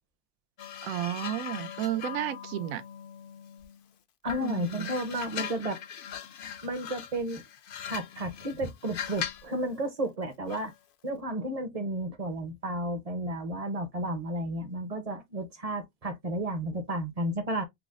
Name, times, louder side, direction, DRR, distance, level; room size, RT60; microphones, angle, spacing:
sound 1, 0.6-3.8 4.3-9.5 10.5-10.7, left 9 dB, 70° left, 0.5 m, -40 dB
voice 1, 0.8-2.8 4.4-4.9, right 12 dB, 80° right, 1.0 m, -32 dB
voice 2, 4.2-5.8 6.6-7.4 7.9-10.7 11.0-17.6, right 1 dB, 35° right, 0.7 m, -32 dB
5.8 x 2.0 x 2.4 m
omnidirectional pair, 1.4 m